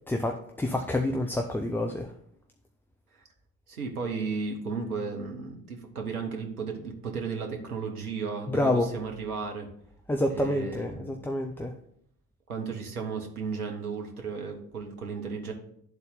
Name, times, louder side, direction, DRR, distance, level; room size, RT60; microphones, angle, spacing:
voice 1, 0.1-2.1 8.5-8.9 10.1-11.7, left 1 dB, 5° left, 3 dB, 0.4 m, -28 dB
voice 2, 3.7-9.7 10.3-11.1 12.5-15.5, right 5 dB, 85° right, 3 dB, 0.9 m, -34 dB
10.5 x 4.0 x 3.8 m, 0.69 s
figure-of-eight pair, 45°, 44 cm